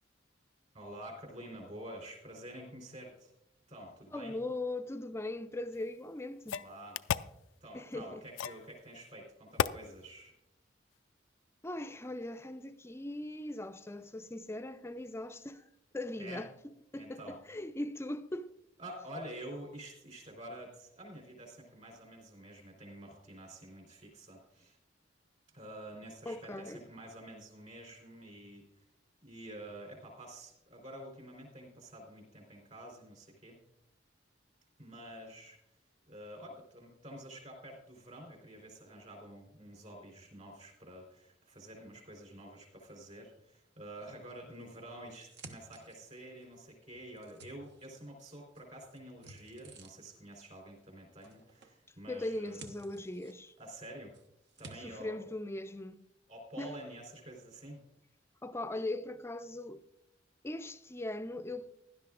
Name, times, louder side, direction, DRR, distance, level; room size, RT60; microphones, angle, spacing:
voice 1, 0.7-3.3 3.7-4.4 6.6-7.0 7.6-10.3 16.2-16.5 17.0-17.4 18.8-24.8 25.5-28.6 29.2-33.6 34.8-35.6 36.1-52.7 53.6-54.1 54.6-55.2 56.3-57.8, right 1 dB, 40° right, 3.8 m, -48 dB
voice 2, 4.1-6.6 7.7-8.2 11.6-15.6 15.9-16.5 16.9-18.5 26.3-26.8 52.1-53.5 54.8-56.0 56.6-56.7 58.4-59.8 60.4-61.7, left 1 dB, 15° left, 0.5 m, -39 dB
sound 1, 5.7-5.8 6.5-7.4 8.4-8.7 9.6-9.8, left 8 dB, 90° left, 0.3 m, -33 dB
sound 2, 44.6-46.4 46.9-48.3 48.5-50.2 51.2-51.8 52.1-53.8 54.1-54.7, right 3 dB, 65° right, 1.1 m, -54 dB
16.5 x 11.5 x 2.5 m
head